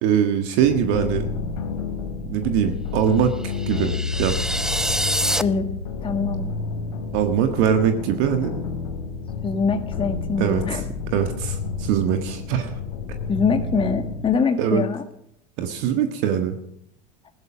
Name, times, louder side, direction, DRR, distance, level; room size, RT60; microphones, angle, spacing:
voice 1, 0.0-1.3 2.2-4.4 7.1-8.5 10.4-10.8 11.1-12.8 14.6-14.8 15.6-16.5, right 8 dB, 65° right, 7 dB, 1.6 m, -22 dB
sound 1, 0.6-14.3, left 5 dB, 80° left, 2.7 m, -30 dB
sound 2, 3.4-5.4, right 1 dB, 5° right, 0.6 m, -26 dB
voice 2, 5.4-5.7 6.0-6.5 9.4-10.8 13.3-15.0, left 5 dB, 25° left, 6 dB, 1.9 m, -23 dB
16.0 x 12.0 x 6.2 m, 0.73 s
hypercardioid pair, 85°, 19 cm